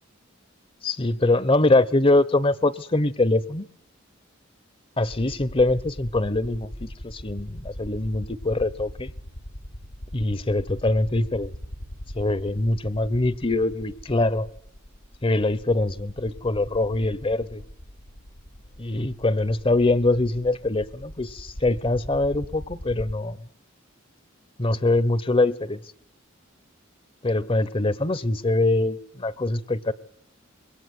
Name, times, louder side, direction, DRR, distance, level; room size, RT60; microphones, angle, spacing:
voice 1, 0.8-3.7 5.0-9.1 10.1-11.5 12.1-14.5 15.2-17.6 18.8-23.4 24.6-25.8 27.2-29.9, left 2 dB, 25° left, 1.1 m, -23 dB
sound 1, 5.1-23.1, equal, 85° left, 6.3 m, -41 dB
27.0 x 23.0 x 9.5 m
head